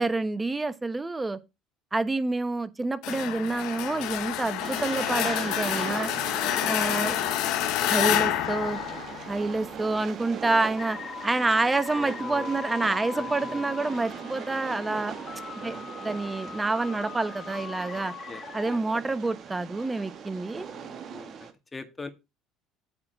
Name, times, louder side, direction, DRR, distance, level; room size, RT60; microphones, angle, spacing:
voice 1, 0.0-1.4 1.9-6.1 6.6-7.2 7.8-8.8 9.3-11.0 11.2-15.1 15.6-15.8 16.0-18.1 18.5-20.7, right 3 dB, 15° right, 1.1 m, -28 dB
sound 1, 3.0-9.7, left 13 dB, 75° left, 1.0 m, -28 dB
Train, 4.6-21.5, right 7 dB, 50° right, 1.7 m, -40 dB
voice 2, 7.0-7.4 11.9-12.5 13.1-13.6 13.9-14.1 15.6-15.9 18.3-18.8 20.7-22.1, left 3 dB, 20° left, 1.8 m, -43 dB
sound 2, 10.8-18.8, left 6 dB, 40° left, 1.3 m, -40 dB
8.8 x 4.3 x 6.8 m
supercardioid pair, 85°, 0 cm